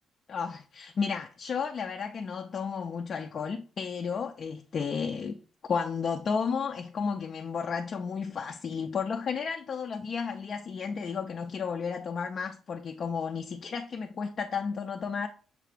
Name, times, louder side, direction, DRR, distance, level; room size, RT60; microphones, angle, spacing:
voice 1, 0.3-5.4 5.6-15.3, left 6 dB, 50° left, 0.4 m, -33 dB
6.5 x 2.4 x 3.3 m
cardioid pair, 90°, 0 cm